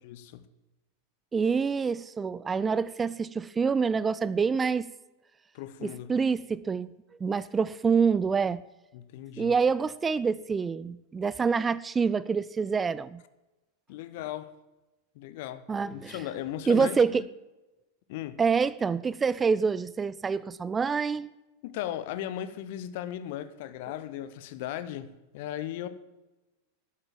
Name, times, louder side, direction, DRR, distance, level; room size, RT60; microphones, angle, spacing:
voice 1, 0.0-0.4 5.5-6.1 8.9-9.6 13.9-14.5 15.1-17.3 18.1-18.4 21.6-25.9, left 12 dB, 50° left, 0.9 m, -37 dB
voice 2, 1.3-4.9 5.8-6.9 7.2-8.6 9.4-13.2 15.7-16.2 16.7-17.2 18.4-21.3, right 5 dB, 15° right, 0.4 m, -26 dB
12.0 x 8.5 x 7.4 m
figure-of-eight pair, 90°, 0 cm